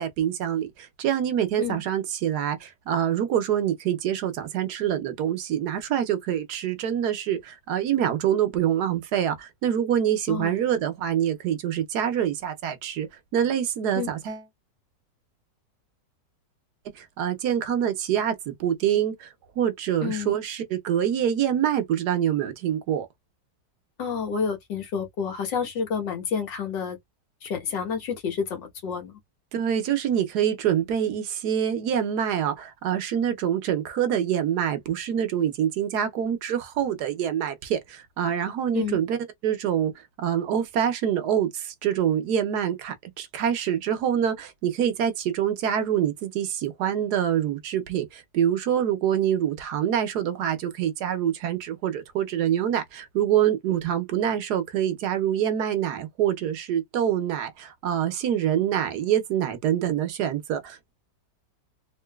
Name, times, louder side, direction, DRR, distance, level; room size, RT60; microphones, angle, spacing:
voice 1, 0.0-13.1 13.3-14.4 16.9-23.1 29.5-39.2 39.4-39.9 40.2-60.9, right 9 dB, 70° right, 1.2 m, -25 dB
voice 2, 10.3-10.6 14.0-14.1 20.0-20.3 24.0-27.0 27.4-29.2 38.7-39.0, left 6 dB, 85° left, 1.9 m, -29 dB
3.7 x 2.5 x 2.3 m
omnidirectional pair, 1.9 m